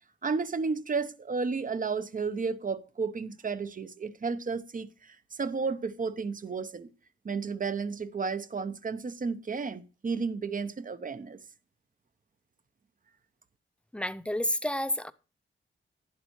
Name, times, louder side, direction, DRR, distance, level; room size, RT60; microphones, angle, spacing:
voice 1, 0.2-6.9 7.2-11.4, right 4 dB, 40° right, 0.8 m, -32 dB
voice 2, 13.9-15.1, left 1 dB, 5° left, 0.5 m, -30 dB
11.5 x 10.0 x 3.2 m
wide cardioid pair, 110°, 21 cm